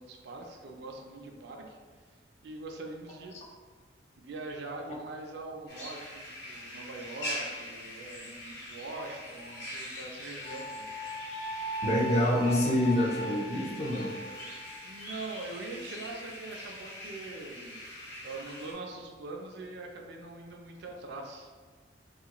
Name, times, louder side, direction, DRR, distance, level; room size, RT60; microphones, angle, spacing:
voice 1, 0.0-1.8 2.4-3.4 4.2-10.9 14.8-17.8 18.2-21.5, right 2 dB, 60° right, 2 dB, 0.4 m, -42 dB
sound 1, 5.7-18.7, left 1 dB, 60° left, 1.0 m, -43 dB
Wind instrument woodwind instrument, 10.4-14.8, right 1 dB, 90° left, 0.5 m, -39 dB
voice 2, 11.8-14.2, left 1 dB, 35° left, -1 dB, 0.4 m, -27 dB
2.9 x 2.4 x 2.9 m, 1.5 s
head